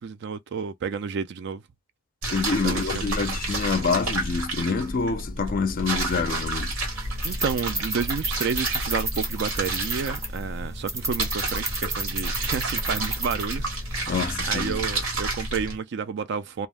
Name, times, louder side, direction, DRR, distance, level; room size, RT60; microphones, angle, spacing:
voice 1, 0.0-1.6 2.2-2.3 2.6-3.0 7.2-13.7 14.0-16.7, right 6 dB, 55° right, 0.3 m, -30 dB
sound 1, 2.2-15.8, right 2 dB, 80° right, 1.2 m, -30 dB
voice 2, 2.3-6.7 14.1-14.8, left 4 dB, 40° left, 0.4 m, -26 dB
sound 2, 6.8-14.1, right 2 dB, 15° right, 0.6 m, -33 dB
2.4 x 2.0 x 3.3 m
head